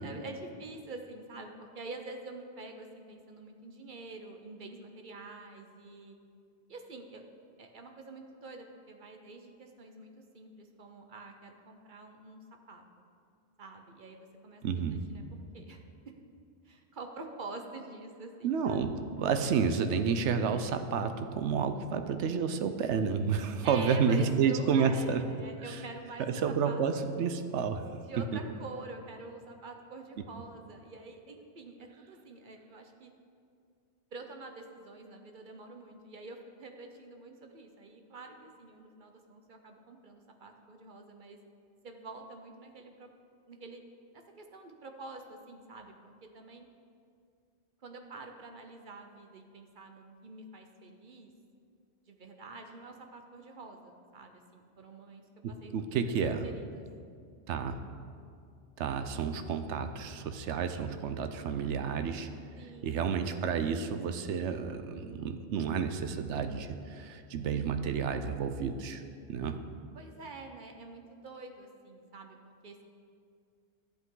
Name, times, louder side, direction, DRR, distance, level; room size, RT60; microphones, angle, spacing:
voice 1, 0.0-6.2 6.7-7.2 7.6-12.4 12.7-12.8 13.6-14.8 15.1-15.2 15.5-15.8 16.6-18.9 19.2-19.3 23.6-27.1 28.1-33.1 34.1-41.4 41.8-43.1 43.5-43.8 44.1-46.0 46.2-46.7 47.8-51.3 52.1-55.2 55.5-55.7 56.4-56.9 62.5-63.1 69.9-72.4 72.6-72.8, right 3 dB, 50° right, 4 dB, 0.9 m, -47 dB
voice 2, 14.6-15.0 18.4-25.2 25.7-25.8 26.2-27.8 28.3-28.4 55.4-56.5 57.5-57.8 58.8-62.3 62.8-69.0 69.3-69.6, right 6 dB, 85° right, 8 dB, 0.9 m, -30 dB
12.0 x 8.2 x 3.8 m, 2.3 s
omnidirectional pair, 1.2 m